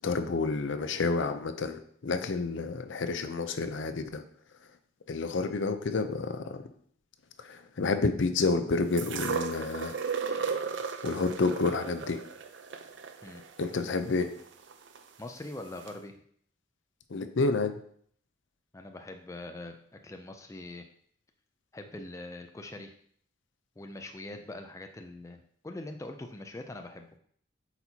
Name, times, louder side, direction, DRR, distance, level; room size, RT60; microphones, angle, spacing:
voice 1, 0.0-4.2 5.1-6.6 7.4-10.0 11.0-12.2 13.6-14.3 17.1-17.8, left 3 dB, 70° left, 9 dB, 0.5 m, -29 dB
sound 1, 9.0-15.0 15.9-16.0, right 6 dB, 70° right, 0.5 m, -35 dB
voice 2, 15.2-16.1 18.7-20.8 21.7-22.9 23.8-27.1, left 2 dB, 15° left, 5 dB, 0.3 m, -43 dB
8.0 x 4.4 x 2.8 m, 0.63 s
head